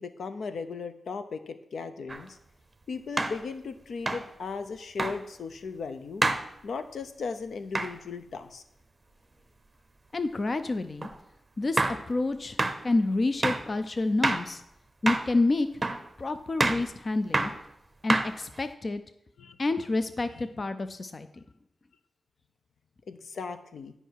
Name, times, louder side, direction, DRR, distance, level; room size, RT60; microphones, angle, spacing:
voice 1, 0.0-2.4 2.9-6.2 6.6-8.6 19.4-19.6 20.4-20.5 23.1-23.9, left 5 dB, 80° left, 9 dB, 0.6 m, -37 dB
sound 1, 2.1-2.2 3.2-3.4 4.1-4.3 5.0-5.2 6.2-6.5 7.7-7.9 11.0-11.2 11.8-12.0 12.6-12.8 13.4-13.7 14.2-14.5 15.1-15.3 15.8-16.1 16.6-16.9 17.3-17.6 18.1-18.6, right 2 dB, 25° right, 0.7 m, -27 dB
voice 2, 10.1-11.1 11.6-12.6 12.8-14.6 15.0-15.7 16.2-17.5 18.0-19.0 19.6-21.3, left 2 dB, 40° left, 11 dB, 0.4 m, -28 dB
10.0 x 5.4 x 4.6 m, 0.79 s
wide cardioid pair, 115°, 0 cm